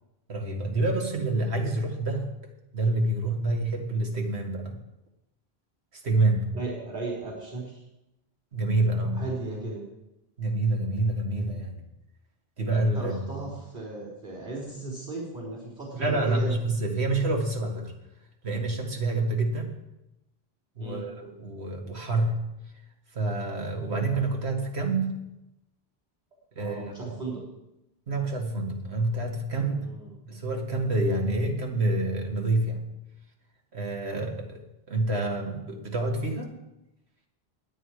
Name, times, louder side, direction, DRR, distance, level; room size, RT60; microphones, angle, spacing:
voice 1, 0.3-2.3 2.7-4.8 6.0-6.5 8.5-9.2 10.4-11.8 12.6-13.2 16.0-17.9 18.4-19.7 20.8-22.4 23.1-25.2 26.6-27.2 28.1-29.9 30.3-32.8 33.7-34.6 34.9-36.5, right 2 dB, 90° right, 2 dB, 2.2 m, -27 dB
voice 2, 6.5-7.8 9.1-9.9 12.9-16.5 20.8-21.0 26.6-27.4 29.8-30.1, right 2 dB, 40° right, -4 dB, 4.2 m, -36 dB
21.0 x 7.7 x 4.9 m, 0.93 s
omnidirectional pair, 1.1 m